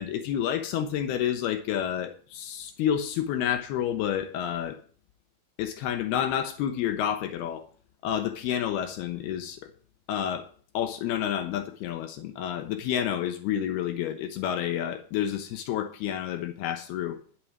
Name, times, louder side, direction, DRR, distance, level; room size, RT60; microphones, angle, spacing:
voice 1, 0.0-4.8 5.6-7.7 8.0-9.7 10.1-10.5 10.7-17.2, left 10 dB, 85° left, 3.1 m, -29 dB
11.5 x 6.9 x 7.2 m
omnidirectional pair, 4.4 m